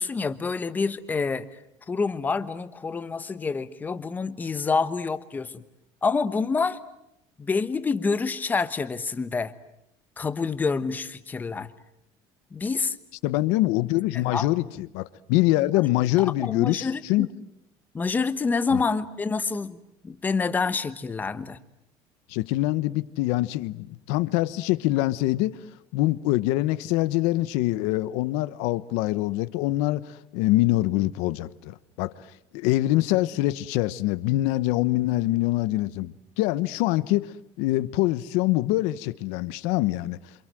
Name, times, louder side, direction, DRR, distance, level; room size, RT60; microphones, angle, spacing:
voice 1, 0.0-1.6 1.9-5.6 6.0-6.8 7.4-9.5 10.2-11.7 12.5-13.0 14.1-14.5 16.2-17.3 17.9-21.6, left 4 dB, 15° left, 1.2 m, -27 dB
voice 2, 13.2-17.3 18.7-18.8 22.3-25.6 25.9-32.1 32.5-40.2, left 17 dB, 85° left, 1.1 m, -24 dB
28.0 x 27.0 x 7.7 m
cardioid pair, 170°, 11 cm